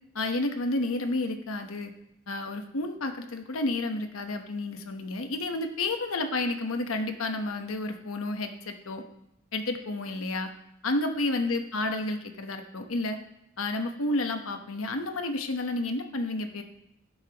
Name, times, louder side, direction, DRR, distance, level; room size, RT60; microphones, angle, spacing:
voice 1, 0.1-1.9 2.3-9.0 9.5-10.5 10.8-13.2 13.6-16.6, left 2 dB, 85° left, 6 dB, 1.0 m, -30 dB
15.5 x 7.3 x 2.9 m, 0.80 s
head